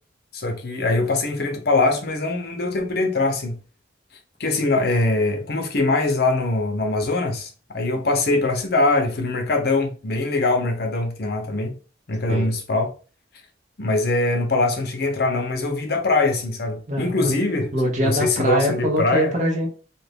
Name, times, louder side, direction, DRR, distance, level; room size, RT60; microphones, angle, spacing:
voice 1, 0.3-3.6 4.4-11.7 12.1-12.9 13.8-17.7 18.0-19.3, left 2 dB, 60° left, 0.7 m, -22 dB
voice 2, 16.9-17.3 17.7-19.7, equal, 40° right, 0.9 m, -23 dB
2.8 x 2.5 x 3.5 m
head